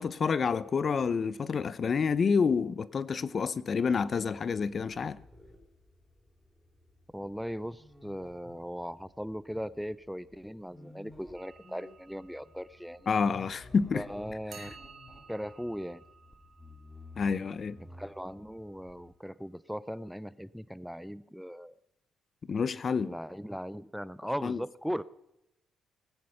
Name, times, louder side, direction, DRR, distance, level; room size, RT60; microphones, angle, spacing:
voice 1, 0.0-5.2 13.1-14.0 14.6-14.7 17.2-17.8 22.5-23.1 24.4-24.6, left 5 dB, 45° left, 0.7 m, -28 dB
sound 1, 4.5-19.1, left 2 dB, 15° left, 2.8 m, -54 dB
voice 2, 7.1-13.1 13.9-14.8 15.3-16.0 17.9-21.7 23.0-25.0, equal, ahead, 0.4 m, -38 dB
sound 2, 11.3-13.8 14.5-18.4, right 6 dB, 55° right, 1.8 m, -56 dB
19.5 x 9.5 x 5.7 m
cardioid pair, 90°, 0 cm